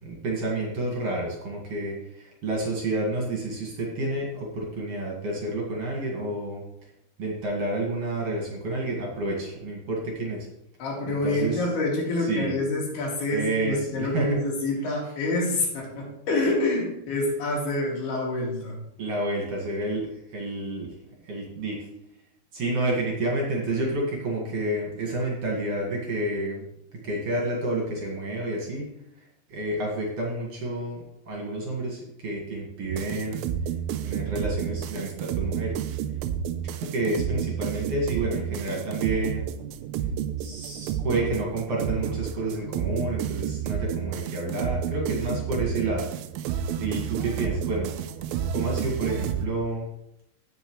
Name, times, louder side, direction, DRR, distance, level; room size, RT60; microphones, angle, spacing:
voice 1, 0.0-6.6 7.2-10.5 11.1-11.6 12.2-12.6 13.3-14.4 19.0-20.9 21.2-21.8 22.5-26.7 27.0-28.9 29.5-33.4 34.0-35.9 36.7-39.4 40.4-46.1 46.8-47.9 48.5-49.9, right 2 dB, 50° right, -2 dB, 2.3 m, -29 dB
voice 2, 10.8-18.8, left 2 dB, 70° left, -3 dB, 4.4 m, -27 dB
sound 1, 32.9-49.5, right 9 dB, 85° right, 2.1 m, -30 dB
17.0 x 5.8 x 3.2 m, 0.82 s
omnidirectional pair, 4.8 m